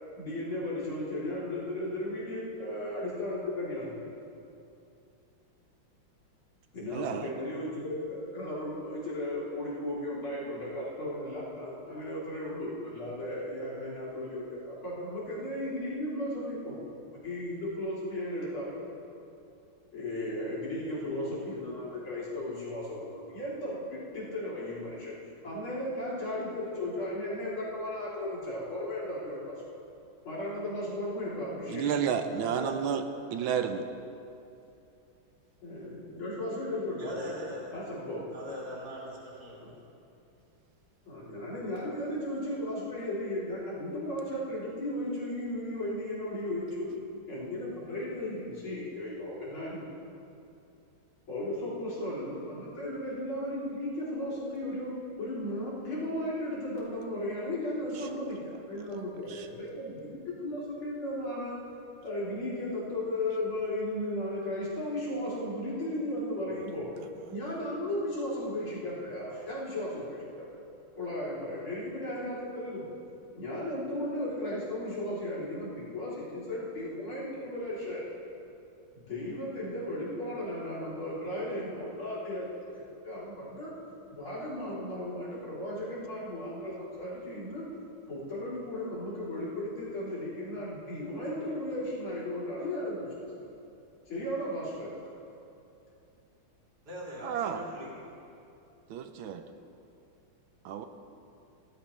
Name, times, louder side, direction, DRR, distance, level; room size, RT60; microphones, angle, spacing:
voice 1, 0.2-4.0 6.7-16.8 17.1-18.9 19.9-25.1 25.4-29.5 30.2-31.9 35.6-37.3 37.7-38.3 39.6-39.7 41.0-46.9 47.3-49.9 51.3-54.9 55.2-61.6 62.0-66.9 67.3-70.6 71.0-72.8 73.4-78.0 79.1-83.7 84.1-87.6 88.1-93.1 94.1-94.9, left 1 dB, 75° left, -8 dB, 4.2 m, -35 dB
voice 2, 6.9-7.2 31.7-33.0 33.3-33.8 97.2-97.6 98.9-99.4 100.6-100.9, right 7 dB, 75° right, 7 dB, 1.5 m, -31 dB
voice 3, 32.3-32.8 33.4-33.7 37.0-37.8 38.3-39.6 96.9-98.0, equal, 50° right, -6 dB, 3.5 m, -41 dB
18.0 x 14.5 x 3.3 m, 2.7 s
omnidirectional pair, 2.3 m